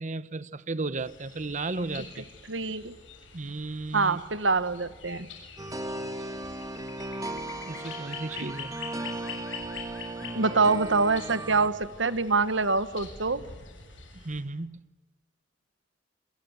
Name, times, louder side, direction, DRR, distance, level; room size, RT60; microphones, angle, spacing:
voice 1, 0.0-2.2 3.3-4.2 7.6-8.7 14.1-14.9, right 3 dB, 40° right, 0.9 m, -34 dB
sound 1, 1.0-14.4, left 5 dB, 80° left, 7.2 m, -45 dB
voice 2, 2.5-2.9 3.9-5.3 8.4-8.5 10.3-13.4, right 4 dB, 75° right, 1.4 m, -25 dB
sound 2, 5.6-11.7, right 1 dB, 20° right, 1.5 m, -36 dB
30.0 x 23.0 x 8.0 m
head